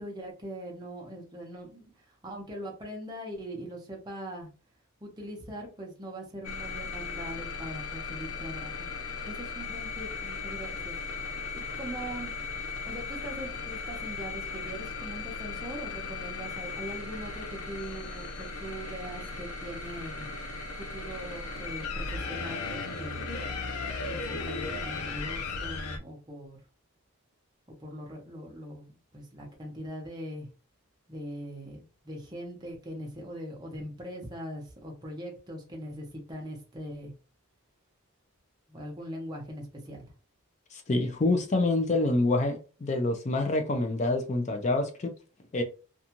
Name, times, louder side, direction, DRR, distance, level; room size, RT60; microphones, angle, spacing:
voice 1, 0.0-4.5 5.0-8.8 9.2-11.0 11.3-12.3 12.8-20.3 20.8-23.2 24.0-26.6 27.7-30.5 31.1-31.8 32.0-37.1 38.7-40.0, equal, 20° right, 0.7 m, -41 dB
sound 1, 6.4-26.0, left 4 dB, 85° left, 0.5 m, -36 dB
voice 2, 40.7-45.1 45.5-45.6, left 2 dB, 30° left, 0.4 m, -27 dB
2.6 x 2.3 x 2.9 m
head